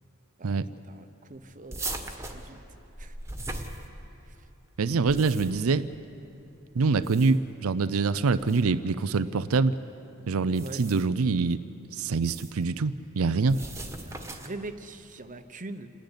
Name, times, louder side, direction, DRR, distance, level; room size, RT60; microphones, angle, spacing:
voice 1, 0.4-2.6 3.0-3.2 4.2-4.5 10.6-10.8 13.5-13.7 14.0-15.9, right 2 dB, 40° right, 9 dB, 0.9 m, -43 dB
sound 1, 1.7-4.3 4.9-5.7 6.9-7.6 8.4-8.6 10.4-11.2 12.1-12.6 13.5-14.6, right 2 dB, 15° right, 1.5 m, -39 dB
voice 2, 4.8-5.9 6.7-9.8 10.3-11.6 11.9-13.6, right 4 dB, 70° right, 14 dB, 0.5 m, -25 dB
28.5 x 10.5 x 9.8 m, 2.8 s
head